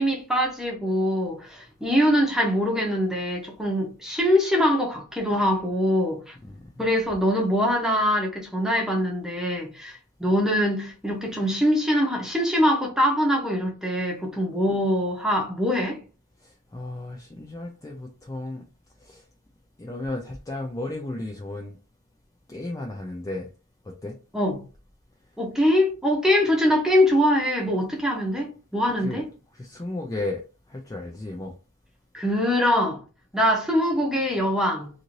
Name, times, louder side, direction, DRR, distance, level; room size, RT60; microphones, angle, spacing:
voice 1, 0.0-6.3 6.8-16.0 24.3-24.6 25.4-29.2 32.1-33.0 33.3-34.9, equal, 5° right, 0.8 m, -23 dB
voice 2, 6.4-6.9 16.4-18.6 19.0-19.2 19.8-21.8 22.5-23.5 23.9-24.2 29.0-29.2 29.5-30.4 30.7-31.5, left 2 dB, 15° left, 0.3 m, -34 dB
2.6 x 2.5 x 3.0 m
head